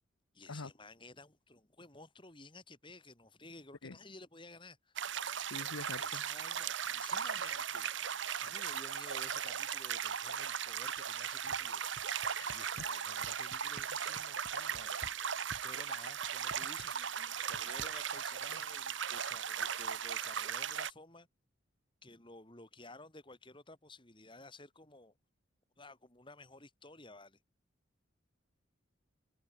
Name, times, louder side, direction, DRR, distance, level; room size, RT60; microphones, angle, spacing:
voice 1, 0.3-5.5 6.0-8.0 8.4-17.0 17.5-21.3 22.0-25.1 25.8-27.4, left 2 dB, 25° left, 3.3 m, -54 dB
sound 1, 5.0-20.9, right 8 dB, 65° right, 1.2 m, -38 dB
voice 2, 5.5-6.2 12.4-12.6, left 3 dB, 85° left, 1.1 m, -45 dB
sound 2, 11.0-11.1 11.4-15.2 15.5-18.2, right 2 dB, 45° right, 3.9 m, -52 dB
head